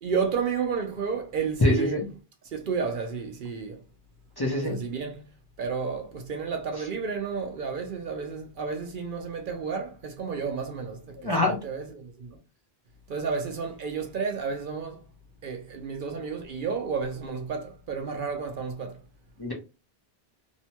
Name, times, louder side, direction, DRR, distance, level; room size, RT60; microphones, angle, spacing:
voice 1, 0.0-2.0 2.5-3.8 4.6-5.2 5.6-12.4 13.1-15.0 15.4-19.0, right 5 dB, 60° right, 0.7 m, -31 dB
voice 2, 1.6-2.1 4.4-4.8 11.2-11.6 19.4-19.5, left 1 dB, 30° left, 0.6 m, -24 dB
2.7 x 2.2 x 2.8 m
omnidirectional pair, 1.0 m